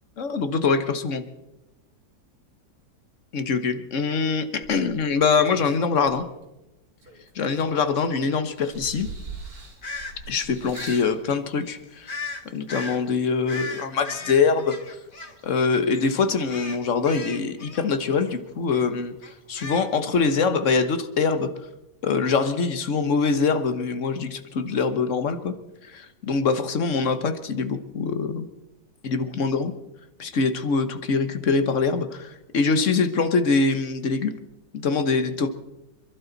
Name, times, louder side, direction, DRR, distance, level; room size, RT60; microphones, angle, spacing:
voice 1, 0.2-1.2 3.3-6.2 7.3-9.1 10.3-12.1 12.5-14.8 15.4-19.1 19.5-21.5 22.0-25.5 25.9-28.5 29.0-29.7 30.2-34.3 34.7-35.5, left 4 dB, 45° left, 10 dB, 1.3 m, -24 dB
sound 1, 4.6-6.4 7.0-8.1 8.5-11.1 12.0-12.1, right 3 dB, 55° right, 3.3 m, -41 dB
sound 2, 9.8-10.1 10.7-11.0 12.1-12.4 12.7-13.0 13.5-15.7 15.9-16.1 16.5-18.3 18.7-18.9 19.2-20.2, left 3 dB, 30° left, 1.4 m, -36 dB
27.0 x 12.0 x 4.0 m, 0.95 s
omnidirectional pair, 1.9 m